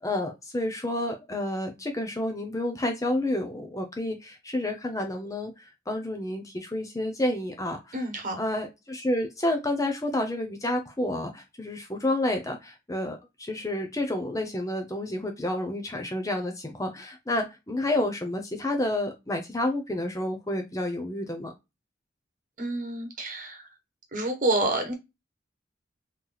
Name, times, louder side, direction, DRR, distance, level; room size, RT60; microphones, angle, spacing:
voice 1, 0.0-8.0 8.4-21.5, left 1 dB, 15° left, 4 dB, 0.6 m, -30 dB
voice 2, 7.9-8.4 22.6-23.7 24.1-24.9, right 2 dB, 40° right, 3 dB, 1.1 m, -28 dB
3.0 x 2.3 x 3.8 m, 0.23 s
head